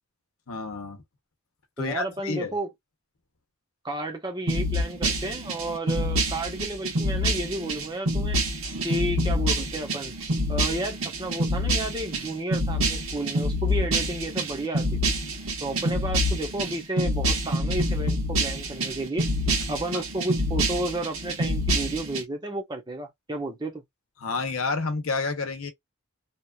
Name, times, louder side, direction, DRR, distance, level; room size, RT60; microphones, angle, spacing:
voice 1, 0.5-1.0 1.8-2.5 19.9-20.0 24.2-25.7, left 4 dB, 70° left, 0.8 m, -29 dB
voice 2, 1.8-2.7 3.8-8.4 8.8-10.1 10.5-15.1 15.6-19.3 19.7-23.8, right 2 dB, 20° right, 0.7 m, -32 dB
sound 1, 4.5-22.2, equal, 65° right, 1.2 m, -27 dB
2.9 x 2.4 x 2.2 m
head